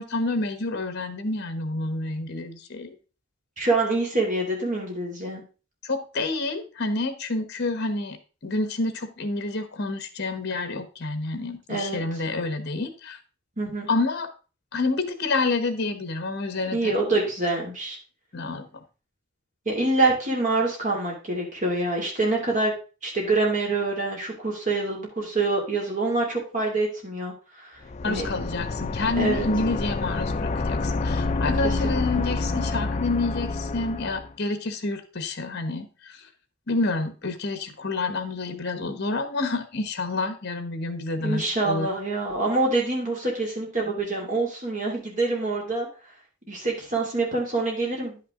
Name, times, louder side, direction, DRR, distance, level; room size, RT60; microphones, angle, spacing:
voice 1, 0.0-2.9 5.8-8.2 8.4-13.2 13.9-14.3 14.7-16.9 18.3-18.7 28.0-36.2 36.7-41.9, left 3 dB, 55° left, 9 dB, 1.2 m, -28 dB
voice 2, 3.6-5.4 11.7-12.0 13.6-13.9 16.7-18.0 19.6-22.7 23.0-27.8 28.0-28.3 29.2-29.5 31.6-32.3 41.2-45.9 46.5-48.3, right 2 dB, 40° right, -1 dB, 2.8 m, -26 dB
sound 1, 27.8-34.3, left 3 dB, 35° left, 0.4 m, -28 dB
10.0 x 5.9 x 3.7 m, 0.34 s
head